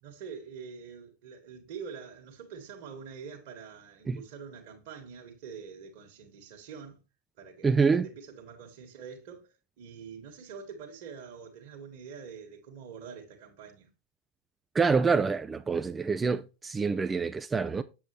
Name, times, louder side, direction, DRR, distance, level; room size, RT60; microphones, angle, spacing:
voice 1, 0.0-7.0 7.4-13.9, right 6 dB, 45° right, 1.6 m, -45 dB
voice 2, 7.6-8.1 14.7-17.8, right 5 dB, 15° right, 0.4 m, -26 dB
7.4 x 7.0 x 3.2 m
figure-of-eight pair, 90°, 0 cm